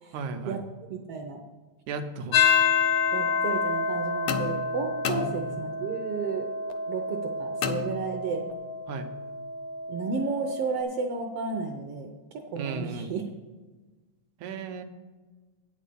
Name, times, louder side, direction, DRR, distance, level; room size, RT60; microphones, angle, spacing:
voice 1, 0.1-0.6 1.9-2.4 5.1-5.5 8.9-9.1 12.6-13.1 14.4-14.8, right 4 dB, 90° right, 7 dB, 2.2 m, -35 dB
voice 2, 0.9-1.4 3.1-6.5 6.9-8.5 9.9-13.2, right 4 dB, 70° right, 3 dB, 1.4 m, -33 dB
sound 1, 2.3-10.8, left 5 dB, 70° left, 1.6 m, -28 dB
sound 2, 4.3-5.9 7.6-8.6, left 8 dB, 85° left, 1.2 m, -33 dB
9.1 x 6.5 x 6.8 m, 1.3 s
omnidirectional pair, 3.3 m